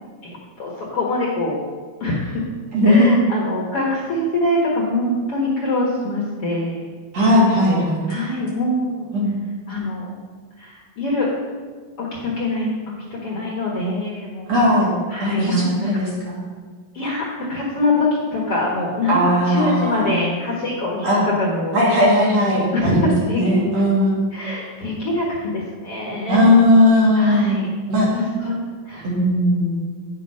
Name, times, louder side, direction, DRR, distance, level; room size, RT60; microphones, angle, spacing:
voice 1, 0.2-1.7 2.0-2.4 2.8-6.9 8.1-9.1 9.7-10.2 10.6-11.3 12.0-14.6 15.1-16.0 16.9-22.0 22.5-23.6 24.3-26.5 27.1-27.7 28.1-29.1, left 1 dB, 55° left, -3 dB, 1.7 m, -24 dB
voice 2, 2.7-3.1 7.1-8.0 9.1-9.3 14.5-14.9 15.2-16.4 19.1-20.2 21.0-21.2 21.7-24.2 26.3-27.6 27.9-28.2 29.0-29.7, left 1 dB, 50° right, -5 dB, 2.9 m, -17 dB
9.6 x 6.3 x 5.3 m, 1.5 s
omnidirectional pair, 4.2 m